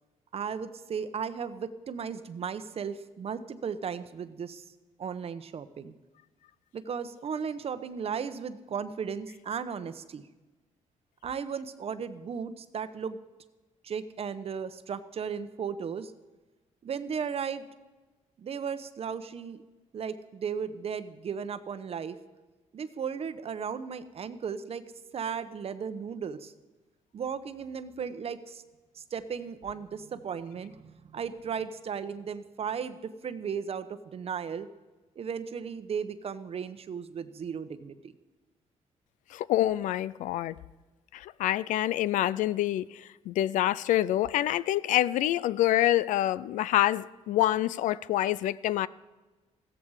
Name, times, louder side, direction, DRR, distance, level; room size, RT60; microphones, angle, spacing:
voice 1, 0.3-4.6 5.0-5.9 6.7-10.2 11.2-13.2 13.8-16.1 16.8-17.7 18.4-19.6 19.9-22.2 22.7-24.8 25.1-26.5 27.1-28.6 28.9-34.7 35.2-38.1, right 6 dB, 50° right, 0.9 m, -35 dB
voice 2, 39.3-40.6 41.1-48.9, left 14 dB, 85° left, 0.4 m, -26 dB
15.5 x 14.0 x 4.8 m
cardioid pair, 90°, 13 cm